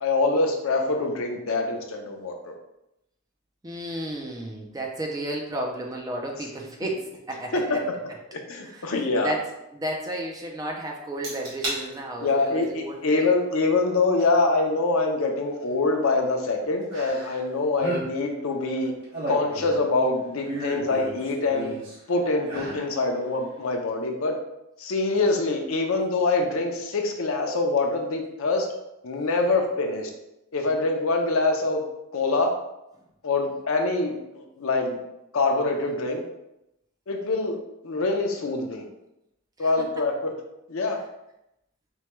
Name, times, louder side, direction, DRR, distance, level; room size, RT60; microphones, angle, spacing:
voice 1, 0.0-2.5 7.5-7.6 8.5-9.3 12.2-18.9 19.3-21.7 22.1-24.4 24.8-28.7 29.0-30.1 30.5-31.8 32.1-32.5 33.2-35.0 35.3-36.2 37.1-37.6 37.8-38.8 39.6-40.1 40.7-41.0, left 3 dB, 70° left, 3 dB, 0.5 m, -24 dB
voice 2, 3.6-7.8 8.6-8.9 9.2-9.4 9.7-13.3 39.6-39.7, right 1 dB, 15° right, 0 dB, 0.4 m, -33 dB
sound 1, 11.2-11.8 12.2-12.6 14.2-14.3 16.9-17.5 17.7-18.1 18.8-19.9 20.4-22.0 22.4-22.9 23.3-23.4, right 1 dB, 60° right, 1.4 m, -34 dB
4.5 x 2.2 x 3.0 m, 0.87 s
head